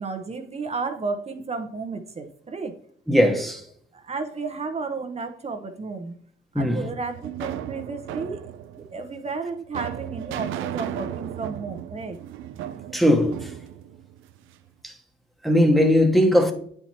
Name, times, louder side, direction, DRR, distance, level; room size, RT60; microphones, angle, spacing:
voice 1, 0.0-2.7 3.9-6.1 6.5-8.5 8.7-12.2, right 4 dB, 30° right, 0.7 m, -32 dB
voice 2, 3.1-3.6 6.5-6.9 12.9-13.5 14.8-14.9 15.4-16.5, equal, ahead, 1.1 m, -19 dB
sound 1, 6.6-14.7, right 11 dB, 90° right, 0.4 m, -36 dB
8.7 x 4.5 x 2.8 m
cardioid pair, 90°, 20 cm